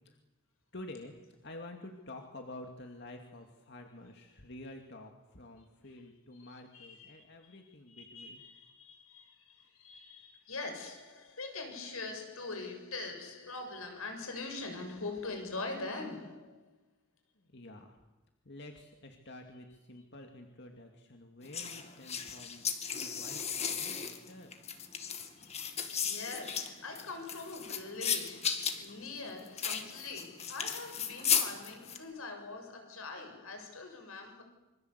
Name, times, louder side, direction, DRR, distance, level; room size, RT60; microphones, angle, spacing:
voice 1, 0.7-1.1 1.4-8.4 17.4-18.0 18.4-22.6 22.9-24.7, left 1 dB, 50° left, 2.5 m, -49 dB
voice 2, 6.3-7.6 7.9-16.7 25.4-34.4, left 3 dB, 85° left, 6.9 m, -43 dB
sound 1, 21.5-32.0, left 7 dB, 30° left, 2.2 m, -35 dB
27.5 x 25.0 x 8.3 m
head